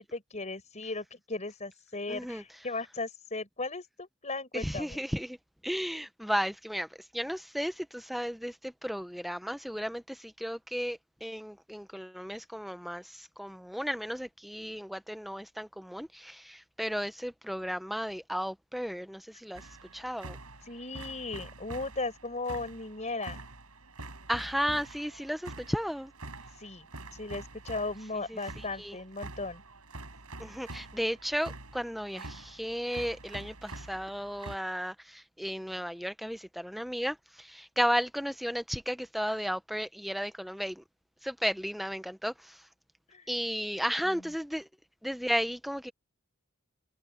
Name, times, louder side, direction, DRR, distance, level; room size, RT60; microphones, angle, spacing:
voice 1, 0.0-5.0 20.7-23.4 26.6-26.9 27.1-29.6 43.1-43.3 44.0-44.2, left 3 dB, 30° left, 4.9 m, -37 dB
voice 2, 2.1-2.4 4.5-5.4 5.6-6.9 7.1-19.7 19.9-20.4 24.3-26.1 28.3-29.0 30.4-40.8 41.2-42.6 43.3-44.7 45.0-45.9, equal, ahead, 0.8 m, -34 dB
sound 1, 19.5-34.6, right 2 dB, 80° right, 6.1 m, -46 dB
head